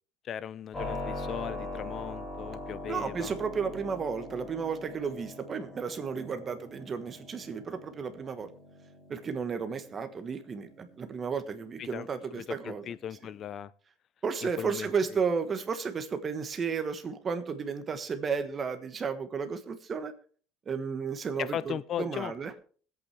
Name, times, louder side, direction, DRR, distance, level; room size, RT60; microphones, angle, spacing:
voice 1, 0.2-3.3 11.8-13.7 14.4-14.9 21.4-22.3, left 9 dB, 40° left, 18 dB, 0.6 m, -38 dB
Keyboard (musical), 0.7-13.5, left 2 dB, 15° left, 5.3 m, -43 dB
voice 2, 2.9-8.5 9.1-12.8 14.2-20.1 20.7-22.6, right 5 dB, 30° right, 9 dB, 1.3 m, -33 dB
21.0 x 8.5 x 3.4 m, 0.43 s
cardioid pair, 140°, 0 cm